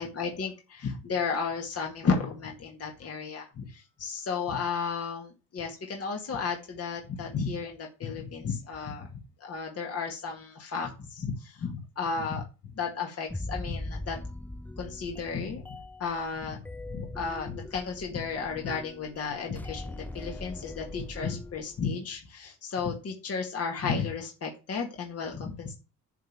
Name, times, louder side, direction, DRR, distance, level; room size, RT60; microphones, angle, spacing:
voice 1, 0.0-12.4 12.8-14.2 14.8-16.6 16.9-25.7, left 5 dB, 50° left, 1 dB, 2.0 m, -33 dB
sound 1, 13.3-21.8, left 2 dB, 5° left, 0.5 m, -41 dB
10.5 x 3.6 x 7.3 m, 0.31 s
cardioid pair, 90°, 30 cm